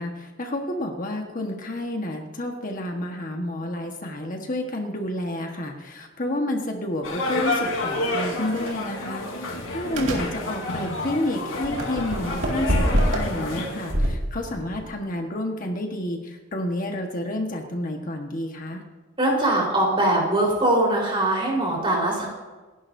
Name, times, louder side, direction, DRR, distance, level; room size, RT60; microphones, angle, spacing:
voice 1, 0.0-18.8, left 1 dB, 40° left, 2 dB, 1.4 m, -30 dB
sound 1, 7.0-13.9, left 2 dB, 85° left, 3.8 m, -29 dB
sound 2, 7.9-8.1 8.6-8.7 9.9-10.3 11.6-13.4 13.9-14.9, equal, 75° right, 2.3 m, -25 dB
voice 2, 19.2-22.3, right 1 dB, 25° right, -3 dB, 4.2 m, -22 dB
27.5 x 11.0 x 2.7 m, 1.3 s
head